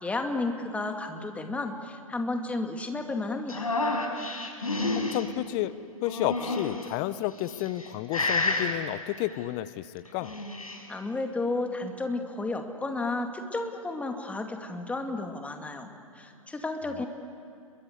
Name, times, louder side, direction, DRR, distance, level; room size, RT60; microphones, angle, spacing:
voice 1, 0.0-3.7 10.9-15.9 16.2-17.1, left 2 dB, 5° left, 4 dB, 2.4 m, -32 dB
sound 1, 3.5-5.2 6.0-6.9 7.5-7.9 8.1-8.7 10.1-10.8, left 2 dB, 85° left, 5.0 m, -29 dB
voice 2, 4.9-5.7 6.0-10.3 17.0-17.1, left 15 dB, 35° left, 17 dB, 0.8 m, -31 dB
30.0 x 22.5 x 8.2 m, 2.7 s
figure-of-eight pair, 120°, 18 cm